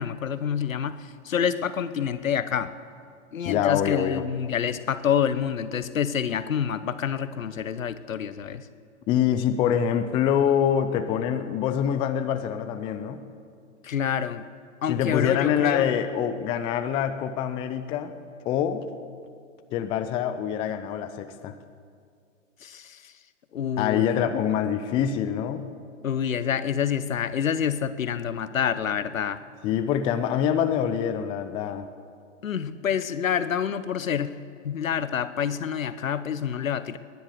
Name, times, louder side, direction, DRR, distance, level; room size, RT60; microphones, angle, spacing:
voice 1, 0.0-2.7 3.3-8.7 13.8-14.5 14.8-16.0 22.6-23.1 23.5-24.2 26.0-29.4 32.4-34.3 34.6-37.0, left 8 dB, 80° left, 13 dB, 0.9 m, -27 dB
voice 2, 3.5-4.2 9.1-13.2 14.9-18.1 18.5-18.9 19.7-21.6 23.8-25.6 29.6-31.9, left 9 dB, 15° left, 9 dB, 0.4 m, -25 dB
20.0 x 10.5 x 6.8 m, 2.3 s
hypercardioid pair, 115°, 39 cm